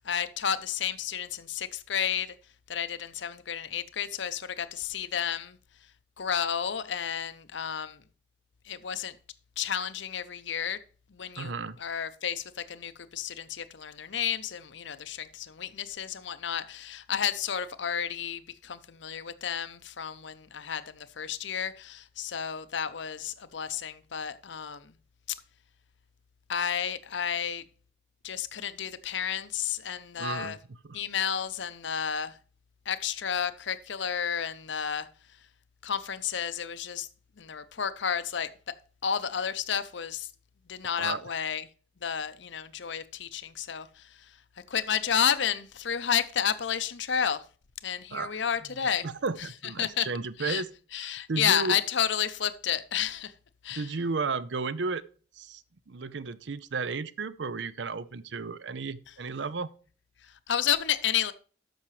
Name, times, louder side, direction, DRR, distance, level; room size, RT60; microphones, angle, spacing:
voice 1, 0.0-2.3 2.7-5.6 6.2-8.0 8.7-9.2 9.6-10.8 11.1-11.5 11.8-24.9 26.5-27.6 28.2-30.6 30.9-32.4 32.9-35.1 35.8-37.1 37.4-38.5 39.0-40.3 40.7-41.7 42.0-44.4 44.7-47.4 47.8-49.1 49.8-50.1 50.4-50.6 50.9-53.3 53.6-53.9 60.2-61.3, left 8 dB, 70° left, 0.7 m, -31 dB
voice 2, 11.4-11.8 30.2-31.0 41.0-41.2 48.1-48.4 49.0-50.7 50.9-51.8 53.7-55.0 55.4-59.7, right 4 dB, 65° right, 0.6 m, -33 dB
13.0 x 5.9 x 3.2 m
head